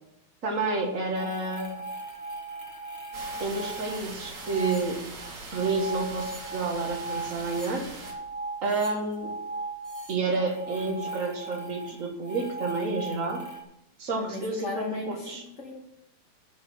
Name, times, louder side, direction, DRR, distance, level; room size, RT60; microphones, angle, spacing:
voice 1, 0.4-1.7 3.4-5.0 5.5-7.8 8.6-9.3 10.1-13.4 14.0-15.4, right 3 dB, 40° right, 1 dB, 1.1 m, -30 dB
sound 1, 1.1-13.6, right 2 dB, 20° right, 0.9 m, -38 dB
sound 2, 3.1-8.1, right 3 dB, 65° right, 4.2 m, -42 dB
voice 2, 14.1-15.7, left 2 dB, 80° left, 0 dB, 0.6 m, -36 dB
11.5 x 4.4 x 7.6 m, 0.83 s
omnidirectional pair, 3.5 m